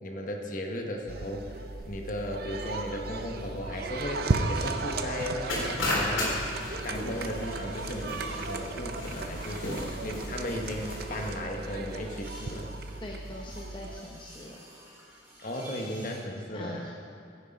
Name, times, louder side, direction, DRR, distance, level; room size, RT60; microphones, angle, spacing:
voice 1, 0.0-1.6 1.9-6.4 6.8-12.7 15.4-16.9, left 1 dB, 40° left, 2 dB, 1.2 m, -36 dB
sound 1, 1.1-14.0, right 3 dB, 50° right, 0.6 m, -35 dB
sound 2, 3.0-16.2, equal, 15° right, 3.1 m, -52 dB
sound 3, 5.5-11.3, left 1 dB, 90° left, 3.3 m, -35 dB
voice 2, 13.0-14.6 16.5-16.9, left 1 dB, 25° left, -2 dB, 0.8 m, -42 dB
15.5 x 8.0 x 5.3 m, 2.5 s
head